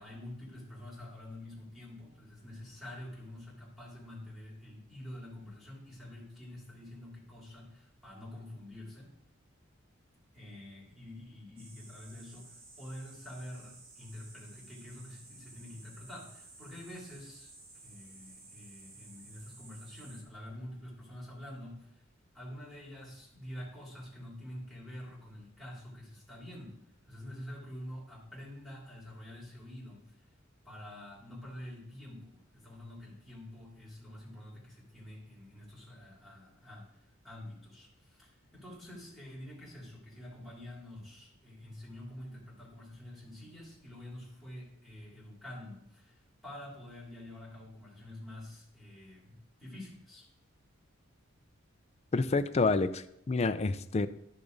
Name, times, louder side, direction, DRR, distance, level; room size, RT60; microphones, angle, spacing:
voice 1, 0.0-9.1 10.3-17.5 17.8-22.0 22.3-30.3 30.6-50.3, left 1 dB, ahead, -7 dB, 3.2 m, -47 dB
sound 1, 11.6-20.2, right 3 dB, 75° right, 1.9 m, -54 dB
voice 2, 52.1-54.1, left 3 dB, 30° left, 11 dB, 0.4 m, -28 dB
11.5 x 6.6 x 4.0 m, 0.77 s
head